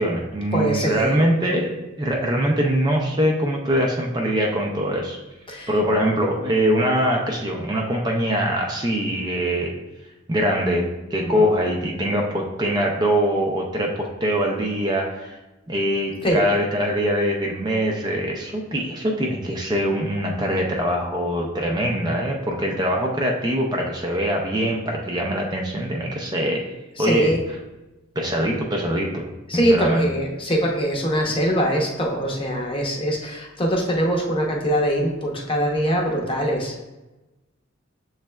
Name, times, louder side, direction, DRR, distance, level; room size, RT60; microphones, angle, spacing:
voice 1, 0.0-5.2 5.7-9.8 10.3-15.4 15.7-26.6 27.0-27.3 28.2-30.1, equal, 20° right, 0 dB, 0.4 m, -23 dB
voice 2, 0.5-1.2 5.5-5.7 11.2-11.5 16.2-16.4 27.0-27.4 29.5-36.8, equal, 25° left, 0 dB, 0.8 m, -22 dB
7.1 x 3.2 x 2.2 m, 1.1 s
head